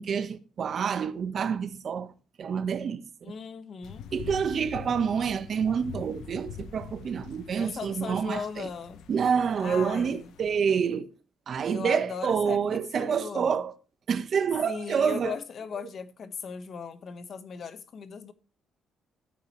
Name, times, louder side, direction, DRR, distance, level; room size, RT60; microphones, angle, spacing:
voice 1, 0.0-2.1 2.4-3.0 4.1-8.7 9.1-11.1 11.5-13.7 14.1-15.3, right 7 dB, 55° right, 1.4 m, -28 dB
voice 2, 3.2-4.1 7.5-9.0 9.6-10.3 11.6-13.6 14.6-18.3, left 6 dB, 55° left, 1.5 m, -38 dB
sound 1, 3.8-10.6, left 7 dB, 85° left, 1.1 m, -44 dB
13.0 x 8.9 x 3.3 m
cardioid pair, 90°, 0 cm